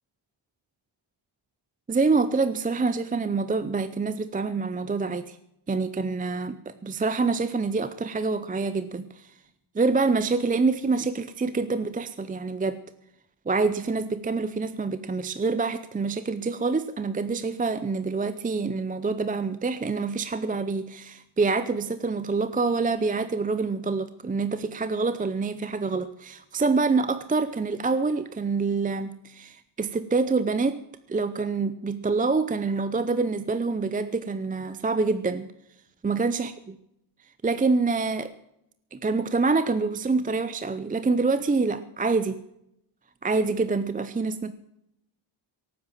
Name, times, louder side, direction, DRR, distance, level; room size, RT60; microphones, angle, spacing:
voice 1, 1.9-5.4 5.7-9.3 9.7-12.8 13.5-30.8 31.1-35.5 36.0-36.5 37.4-38.3 38.9-42.4 43.2-44.5, right 4 dB, 15° right, 13 dB, 0.6 m, -26 dB
17.5 x 9.5 x 7.5 m, 0.79 s
wide cardioid pair, 145°, 49 cm